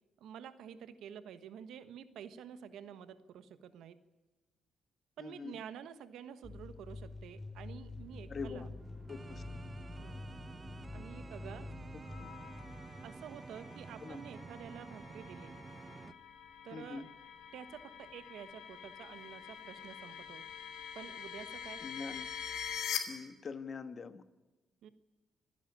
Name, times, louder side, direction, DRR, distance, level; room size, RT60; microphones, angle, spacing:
voice 1, 0.2-4.0 5.2-8.7 10.0-10.3 10.9-11.7 13.0-15.5 16.6-17.0 17.5-20.5 20.9-21.8 24.8-24.9, right 8 dB, 80° right, 12 dB, 1.3 m, -49 dB
voice 2, 5.2-5.6 8.3-8.7 9.1-9.4 12.2-12.3 14.0-14.2 16.7-17.1 21.8-22.3 23.1-24.2, left 4 dB, 45° left, 11 dB, 1.4 m, -43 dB
sound 1, 6.4-13.0, left 3 dB, 15° left, 6.5 m, -47 dB
sound 2, 7.9-16.1, right 4 dB, 25° right, 0.9 m, -50 dB
sound 3, 12.0-23.0, left 8 dB, 85° left, 2.8 m, -45 dB
26.0 x 11.0 x 10.0 m, 1.2 s
cardioid pair, 90°, 0 cm